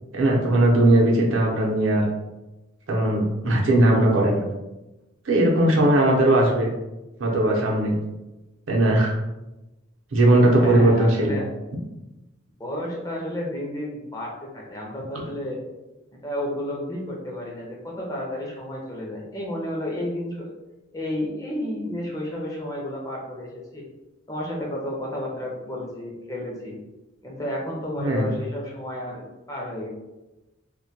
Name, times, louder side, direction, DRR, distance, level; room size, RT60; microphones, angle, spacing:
voice 1, 0.1-2.0 2.9-4.4 5.3-6.7 7.2-7.9 8.7-9.1 10.1-11.4 28.0-28.3, right 1 dB, 85° right, -2 dB, 0.6 m, -19 dB
voice 2, 10.6-11.5 12.6-15.6 16.1-20.5 20.9-23.9 24.3-26.8 27.2-29.9, left 1 dB, 20° left, -3 dB, 0.4 m, -32 dB
2.1 x 2.1 x 2.7 m, 1.0 s
head